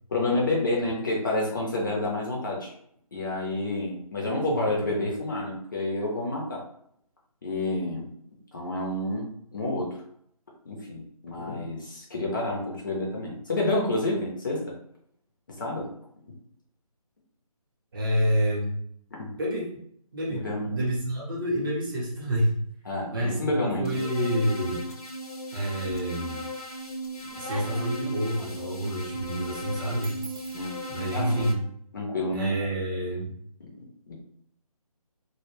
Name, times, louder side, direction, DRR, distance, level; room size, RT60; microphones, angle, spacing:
voice 1, 0.1-2.7 3.1-6.6 7.4-8.1 8.5-10.0 10.7-14.6 15.6-15.9 19.1-19.3 20.3-20.7 22.9-24.0 30.5-30.8 31.1-31.4 31.9-32.5 33.6-33.7 34.1-34.2, left 2 dB, 35° left, -3 dB, 0.5 m, -29 dB
voice 2, 4.4-5.1 17.9-18.7 19.4-19.8 20.1-22.6 23.1-24.9 25.5-26.5 27.4-30.2 30.9-31.6 32.3-33.3, equal, 35° right, -4 dB, 0.8 m, -28 dB
sound 1, 23.8-31.5, equal, 75° left, 0.6 m, -37 dB
sound 2, 26.1-26.4 26.8-31.4, right 4 dB, 65° right, 0.5 m, -45 dB
2.1 x 2.1 x 3.1 m, 0.67 s
figure-of-eight pair, 155°, 19 cm